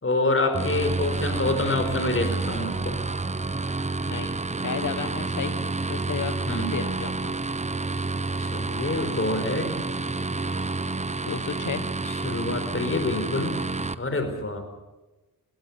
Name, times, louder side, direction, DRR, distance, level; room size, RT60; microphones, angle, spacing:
voice 1, 0.0-3.0 6.5-6.7 8.4-9.7 12.2-13.6 14.0-14.6, left 2 dB, 35° left, 7 dB, 4.7 m, -26 dB
sound 1, 0.5-13.9, right 3 dB, 20° right, 1.1 m, -29 dB
voice 2, 4.0-4.4 4.6-7.3 11.2-11.8, left 7 dB, 55° left, 12 dB, 1.4 m, -33 dB
21.5 x 17.5 x 8.1 m, 1.1 s
cardioid pair, 65°, 36 cm